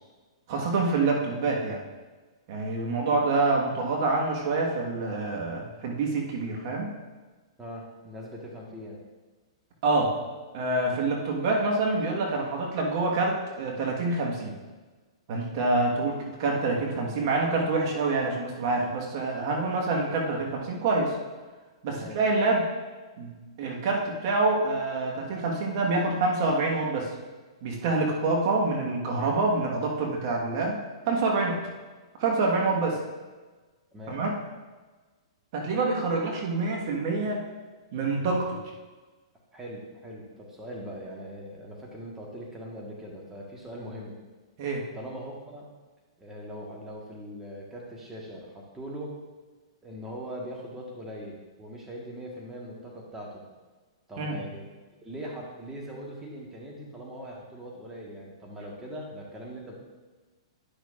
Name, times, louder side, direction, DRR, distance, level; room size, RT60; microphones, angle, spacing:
voice 1, 0.5-1.8 2.5-6.9 9.8-10.1 10.5-14.6 15.3-21.2 21.8-22.7 23.2-27.1 27.6-30.8 31.1-31.6 32.2-33.0 34.1-34.3 35.5-37.4 37.9-38.6 44.6-44.8 54.2-54.4, right 3 dB, 50° right, -1 dB, 1.4 m, -26 dB
voice 2, 7.6-9.0 21.9-22.2 33.9-34.2 39.5-44.2 44.9-45.7 46.2-49.1 49.8-53.4 54.1-54.7 55.0-59.8, equal, 10° right, -3 dB, 1.4 m, -41 dB
10.5 x 6.3 x 2.5 m, 1.3 s
hypercardioid pair, 120°, 3 cm